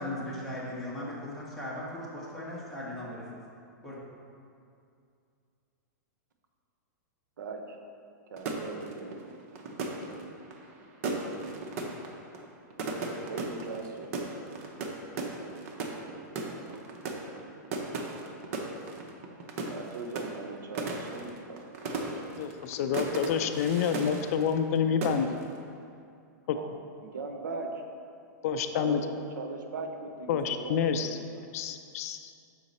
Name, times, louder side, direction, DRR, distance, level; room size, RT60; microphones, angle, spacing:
voice 1, 0.0-3.2 3.8-4.0, left 1 dB, ahead, -8 dB, 1.4 m, -38 dB
voice 2, 7.4-7.8 8.3-9.2 13.3-14.1 19.7-21.7 26.5-26.7 27.0-27.8 28.7-31.5, right 3 dB, 85° right, 4 dB, 0.8 m, -39 dB
sound 1, 8.4-24.8 25.0-25.6, right 3 dB, 50° right, 0.8 m, -37 dB
voice 3, 22.3-25.4 26.5-26.6 28.4-29.0 30.3-31.1 31.5-32.3, left 7 dB, 50° left, 8 dB, 0.4 m, -28 dB
6.3 x 5.0 x 4.2 m, 2.4 s
hypercardioid pair, 145°, 10 cm